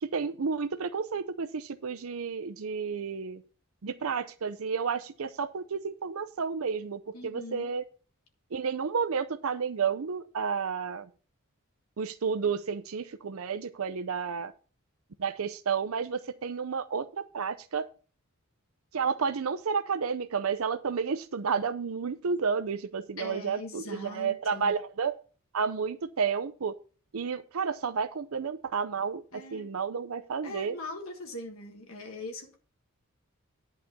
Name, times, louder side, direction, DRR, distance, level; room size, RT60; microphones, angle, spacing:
voice 1, 0.0-3.4 3.8-7.8 8.5-11.1 12.0-14.5 15.2-17.9 18.9-25.1 25.5-26.7 27.1-30.8, right 5 dB, 75° right, 10 dB, 0.6 m, -31 dB
voice 2, 7.1-7.7 23.2-24.7 29.3-29.7 30.4-32.6, left 2 dB, 70° left, 4 dB, 1.6 m, -41 dB
11.0 x 4.2 x 6.7 m, 0.38 s
head